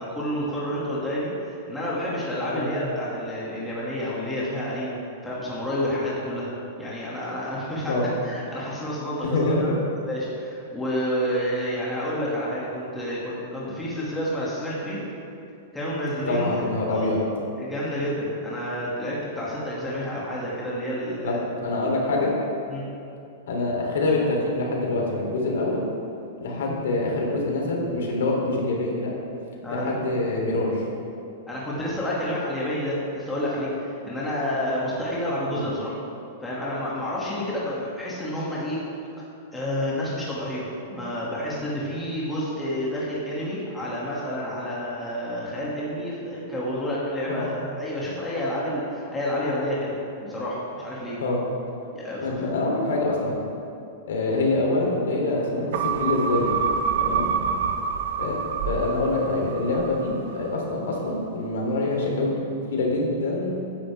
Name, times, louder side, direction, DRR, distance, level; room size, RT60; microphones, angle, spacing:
voice 1, 0.0-4.9 5.2-6.5 6.8-7.9 8.2-9.7 10.1-15.0 15.7-16.6 16.9-17.1 17.6-21.5 22.7-22.8 29.6-30.0 31.5-35.9 36.4-38.8 39.5-49.9 50.2-51.2 51.9-52.5 57.1-57.2, equal, 5° left, -7 dB, 2.2 m, -29 dB
voice 2, 9.2-9.8 16.3-17.2 21.2-21.3 21.6-22.3 23.5-25.8 26.4-29.1 29.7-30.8 35.5-35.7 47.3-47.5 51.2-51.4 52.2-53.4 54.1-56.6 57.0-57.3 58.2-58.4 58.7-62.4 62.7-63.6, left 2 dB, 85° left, -2 dB, 3.1 m, -25 dB
sound 1, 55.7-60.4 60.8-60.9, right 7 dB, 50° right, 0.8 m, -27 dB
16.0 x 9.9 x 3.5 m, 2.7 s
supercardioid pair, 165°, 0 cm